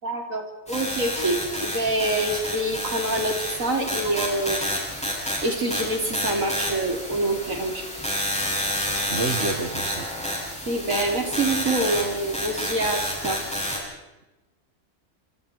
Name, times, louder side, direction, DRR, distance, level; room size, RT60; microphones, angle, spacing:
voice 1, 0.0-4.7 5.4-7.8 10.7-13.4, right 2 dB, 85° right, 2 dB, 4.6 m, -26 dB
sound 1, 0.7-13.8, equal, 5° left, 7.6 m, -29 dB
voice 2, 9.1-10.1, right 4 dB, 60° right, 6 dB, 1.9 m, -28 dB
28.0 x 26.5 x 4.7 m, 1.0 s
omnidirectional pair, 1.4 m